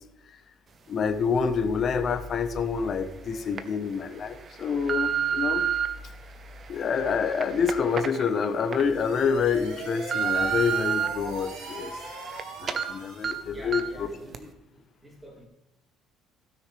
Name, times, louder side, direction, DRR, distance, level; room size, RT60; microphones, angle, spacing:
voice 1, 0.9-5.6 6.7-11.9 12.6-14.1, left 6 dB, 45° left, 8 dB, 1.1 m, -27 dB
sound 1, 2.6-2.7 3.3-3.6 4.2-5.9 6.5-8.8 9.2-9.3 9.8-11.1 11.5-12.4 12.7-12.8 13.2-13.3 13.7-14.0 14.3-14.4, right 7 dB, 40° right, 0.9 m, -29 dB
sound 2, 8.7-13.5, right 3 dB, 80° right, 3.3 m, -39 dB
voice 2, 13.5-15.5, equal, 15° right, -1 dB, 3.2 m, -46 dB
16.5 x 6.4 x 3.4 m, 0.92 s
cardioid pair, 115°, 0 cm